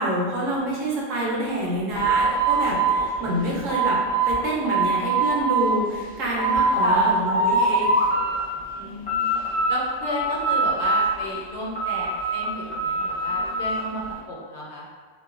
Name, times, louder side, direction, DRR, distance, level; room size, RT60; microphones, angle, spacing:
voice 1, 0.0-4.0 4.3-7.9, right 1 dB, 90° right, -4 dB, 1.0 m, -27 dB
sound 1, 1.9-4.4 4.6-5.7 6.1-7.1 7.3-8.4 8.8-9.8 10.0-11.3 11.8-13.8, right 3 dB, 10° left, 0.7 m, -23 dB
voice 2, 6.8-7.1 8.8-9.4 9.7-14.0 14.3-14.8, left 1 dB, 65° left, -4 dB, 0.8 m, -33 dB
3.0 x 2.1 x 2.4 m, 1.5 s
omnidirectional pair, 1.3 m